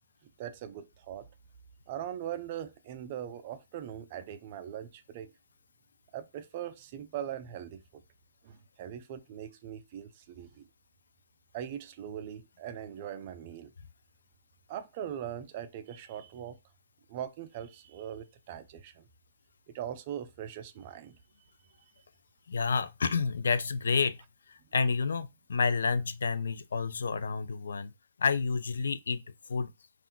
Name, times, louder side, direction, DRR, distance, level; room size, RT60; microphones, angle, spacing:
voice 1, 0.4-1.3 1.9-5.3 6.1-8.0 8.4-10.6 11.5-13.7 14.7-16.6 17.1-19.1 19.7-21.2, right 10 dB, 35° right, 0.3 m, -41 dB
voice 2, 22.5-24.2 24.7-27.9 28.2-29.2 29.5-29.7, left 5 dB, 80° left, 0.3 m, -29 dB
2.4 x 2.2 x 3.6 m
hypercardioid pair, 160°, 0 cm